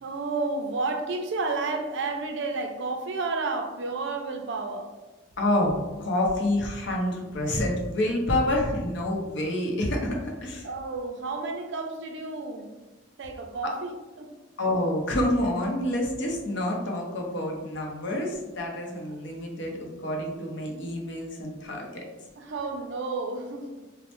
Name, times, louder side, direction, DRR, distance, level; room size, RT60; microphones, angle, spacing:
voice 1, 0.0-4.9 10.6-12.7 13.2-13.9 14.2-14.3 22.4-23.7, right 3 dB, 65° right, 4 dB, 0.4 m, -31 dB
voice 2, 5.4-10.7 13.6-13.7 14.6-22.0, left 1 dB, 65° left, 0 dB, 0.6 m, -28 dB
3.0 x 2.0 x 2.9 m, 1.2 s
head